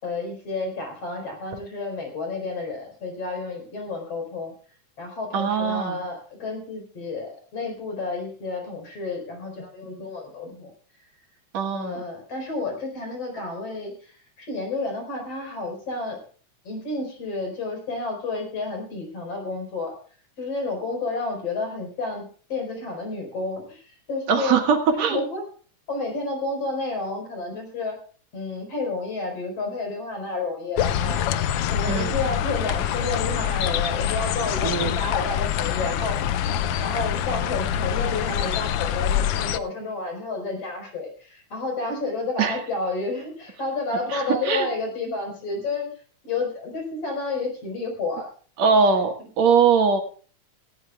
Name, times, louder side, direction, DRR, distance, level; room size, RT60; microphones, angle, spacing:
voice 1, 0.0-4.5 5.0-10.7 11.7-14.1 14.4-16.2 16.7-19.9 20.4-24.6 24.9-25.4 25.9-28.0 28.3-36.2 36.8-45.9 46.2-48.3, left 3 dB, 55° left, 3 dB, 5.6 m, -30 dB
voice 2, 5.3-6.0 11.5-12.0 24.3-25.2 31.9-32.1 34.6-34.9 42.4-42.6 44.1-44.7 48.6-50.0, right 5 dB, 65° right, 4 dB, 2.8 m, -21 dB
sound 1, 30.8-39.6, left 10 dB, 75° left, 1.4 m, -25 dB
18.0 x 16.0 x 2.3 m, 0.42 s
omnidirectional pair, 3.4 m